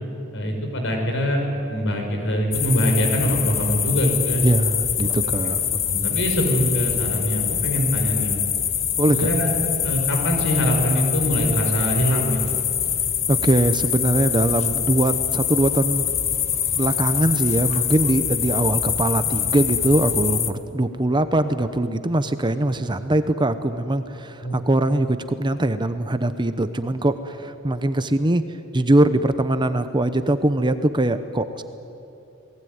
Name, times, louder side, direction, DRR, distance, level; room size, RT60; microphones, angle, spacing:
voice 1, 0.3-4.4 5.2-5.3 5.8-8.4 9.1-12.4 24.4-24.6, equal, 60° left, 3 dB, 5.9 m, -23 dB
sound 1, 2.5-20.5, left 8 dB, 30° left, 1.1 m, -24 dB
voice 2, 4.4-5.8 9.0-9.3 13.3-16.1 16.8-28.4 28.7-31.6, right 1 dB, 20° right, 10 dB, 0.9 m, -22 dB
27.5 x 19.5 x 9.5 m, 2.9 s
head